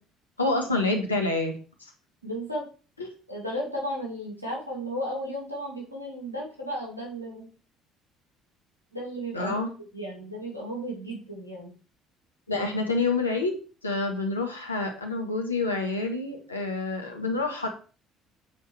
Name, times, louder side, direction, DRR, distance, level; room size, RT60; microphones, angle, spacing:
voice 1, 0.4-1.5 1.8-1.9 3.0-3.1 9.3-9.7 12.5-13.5 13.8-17.7, left 3 dB, 85° left, 2 dB, 1.3 m, -27 dB
voice 2, 2.2-2.7 3.3-7.5 8.9-11.7, equal, 90° right, -2 dB, 2.1 m, -34 dB
7.4 x 4.6 x 4.7 m, 0.37 s
figure-of-eight pair, 55°, 0 cm